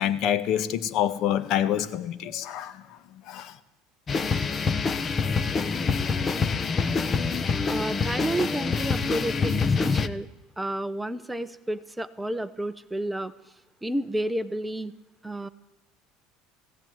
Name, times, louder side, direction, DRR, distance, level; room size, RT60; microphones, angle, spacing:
voice 1, 0.0-2.8 3.3-3.6, left 10 dB, 55° left, 13 dB, 1.6 m, -26 dB
sound 1, 4.1-10.1, left 4 dB, 25° left, 1.1 m, -26 dB
voice 2, 7.6-10.3 10.6-13.3 13.8-14.9 15.2-15.5, right 1 dB, 5° right, 13 dB, 0.9 m, -31 dB
20.0 x 16.5 x 9.5 m, 0.99 s
supercardioid pair, 115°, 0 cm